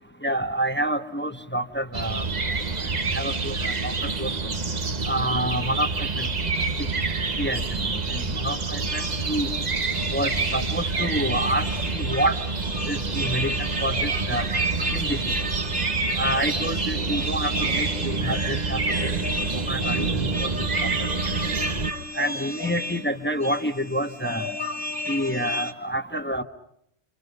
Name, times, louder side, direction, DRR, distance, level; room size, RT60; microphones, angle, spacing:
voice 1, 0.2-2.2 3.1-4.3 5.1-6.3 7.4-7.6 8.1-9.5 10.1-11.6 11.9-12.3 12.9-14.4 14.9-15.2 16.2-19.1 19.5-20.3 22.2-24.4 25.1-26.4, equal, 10° left, 8 dB, 1.2 m, -28 dB
sound 1, 1.9-21.9, right 4 dB, 40° right, 1.2 m, -27 dB
sound 2, 8.9-25.7, left 1 dB, 10° right, 1.9 m, -34 dB
30.0 x 28.0 x 5.4 m, 0.72 s
omnidirectional pair, 1.1 m